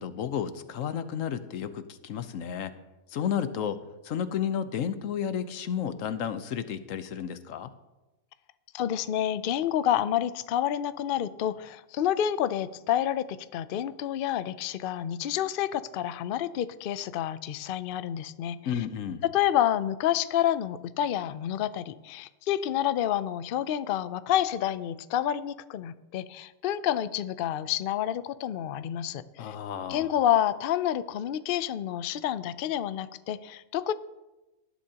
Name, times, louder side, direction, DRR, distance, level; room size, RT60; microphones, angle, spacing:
voice 1, 0.0-2.7 3.1-3.8 4.0-7.7 18.6-19.2 29.4-30.1, left 8 dB, 65° left, 11 dB, 1.1 m, -32 dB
voice 2, 8.7-18.8 19.2-29.5 29.9-33.9, left 11 dB, 85° left, 14 dB, 0.4 m, -29 dB
18.5 x 11.5 x 2.9 m, 1.0 s
omnidirectional pair, 1.5 m